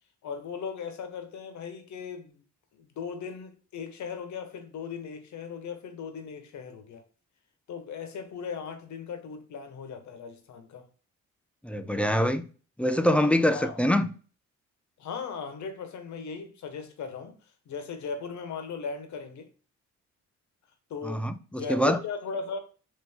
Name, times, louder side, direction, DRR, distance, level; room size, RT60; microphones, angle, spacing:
voice 1, 0.2-2.4 2.7-7.0 7.7-10.9 13.5-13.8 15.0-17.4 17.7-19.5 20.9-21.3 21.6-22.6, left 5 dB, 70° left, 1.3 m, -37 dB
voice 2, 11.6-12.4 12.8-14.1 21.0-22.0, left 1 dB, 5° left, 0.5 m, -24 dB
4.3 x 3.0 x 3.6 m
cardioid pair, 90°, 30 cm